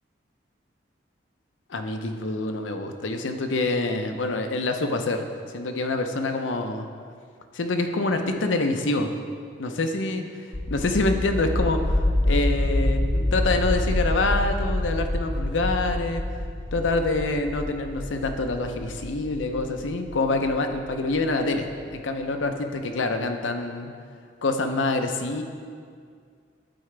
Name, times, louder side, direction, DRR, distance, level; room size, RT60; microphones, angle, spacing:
voice 1, 1.7-5.2 5.5-6.9 7.5-9.1 9.6-16.2 16.7-23.9 24.4-25.4, left 2 dB, 90° left, 6 dB, 0.7 m, -26 dB
sound 1, 10.5-21.2, left 1 dB, 30° left, 0.6 m, -27 dB
11.5 x 4.8 x 3.3 m, 2.1 s
head